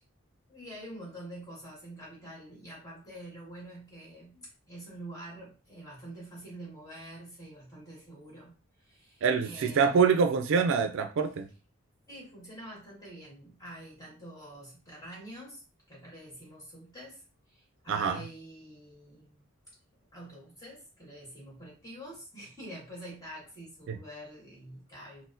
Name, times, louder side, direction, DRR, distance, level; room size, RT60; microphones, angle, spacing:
voice 1, 0.5-8.5 8.8-10.0 12.1-19.4 20.1-25.2, right 1 dB, 20° left, -4 dB, 1.6 m, -46 dB
voice 2, 9.2-11.5 17.9-18.2 23.9-24.0, right 6 dB, 65° right, 7 dB, 0.4 m, -25 dB
4.0 x 2.1 x 2.5 m, 0.33 s
head